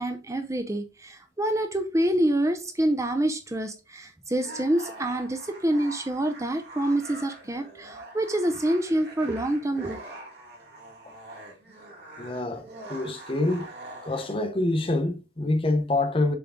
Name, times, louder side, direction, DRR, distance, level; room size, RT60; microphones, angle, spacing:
voice 1, 0.0-10.0, right 1 dB, 15° right, 0.6 m, -27 dB
sound 1, 4.3-14.5, right 2 dB, 55° right, 2.0 m, -44 dB
voice 2, 12.2-13.7 14.0-16.4, left 2 dB, 30° left, 0.8 m, -26 dB
6.9 x 3.8 x 3.6 m
head